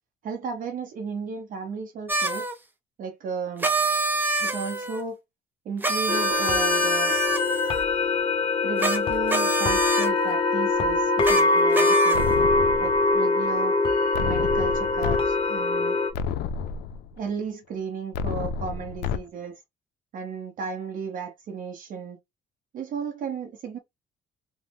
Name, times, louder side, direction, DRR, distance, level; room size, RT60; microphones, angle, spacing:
voice 1, 0.2-2.4 3.0-3.7 4.4-5.2 5.7-7.2 8.6-12.3 12.8-13.7 14.2-16.0 17.2-19.5 20.1-22.2 22.7-23.8, right 5 dB, 55° right, 0.6 m, -34 dB
sound 1, 2.1-2.5 3.6-5.0 5.8-7.9 8.8-9.0 9.3-10.1 11.2-11.4 11.7-12.4, right 2 dB, 10° right, 0.6 m, -26 dB
sound 2, 6.1-16.1, left 3 dB, 30° left, 0.6 m, -23 dB
sound 3, 12.1-13.2 14.1-15.2 15.6-15.7 16.1-17.2 18.1-19.2, left 6 dB, 75° left, 0.4 m, -30 dB
3.0 x 2.0 x 3.2 m
cardioid pair, 110°, 17 cm